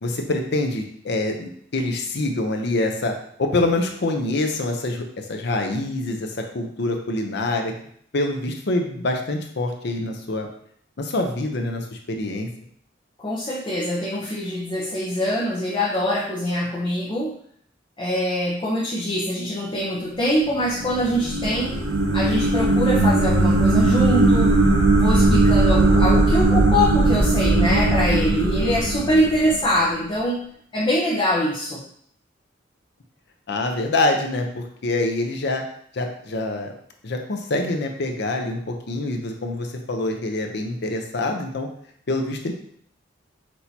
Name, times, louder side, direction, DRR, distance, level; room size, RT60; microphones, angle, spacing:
voice 1, 0.0-7.7 8.1-10.5 11.0-12.5 33.5-35.6 35.9-36.7 37.0-41.7 42.1-42.5, left 2 dB, 65° left, 3 dB, 0.7 m, -25 dB
voice 2, 13.2-17.3 18.0-21.8 22.1-24.6 25.0-30.4 30.7-31.8, equal, 25° left, -6 dB, 0.8 m, -23 dB
sound 1, 20.6-29.9, right 2 dB, 85° right, 0.9 m, -19 dB
6.1 x 2.8 x 2.8 m, 0.64 s
head